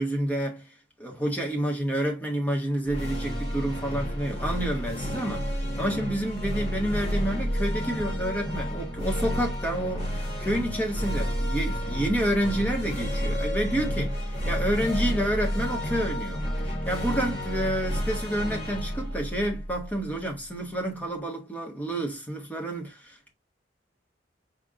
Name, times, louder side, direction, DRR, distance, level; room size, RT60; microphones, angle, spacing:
voice 1, 0.0-23.3, right 1 dB, 10° left, 1.8 m, -29 dB
sound 1, 2.8-20.3, equal, 35° left, 2.9 m, -30 dB
5.4 x 3.6 x 2.5 m
head